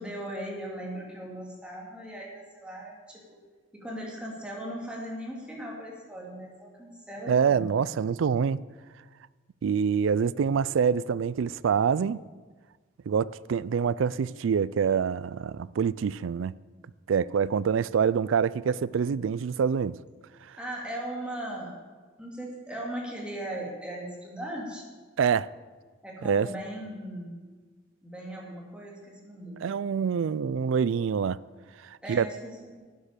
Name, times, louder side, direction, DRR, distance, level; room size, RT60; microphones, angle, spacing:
voice 1, 0.0-3.4 3.7-7.7 20.6-21.7 22.2-24.9 26.0-27.5 28.0-29.7 32.0-32.9, right 1 dB, 5° right, 2.6 m, -38 dB
voice 2, 7.3-8.6 9.6-12.2 13.1-16.5 17.1-20.0 25.2-25.5 26.2-26.5 29.6-31.4 32.1-32.3, right 6 dB, 75° right, 0.4 m, -25 dB
12.0 x 8.9 x 6.7 m
head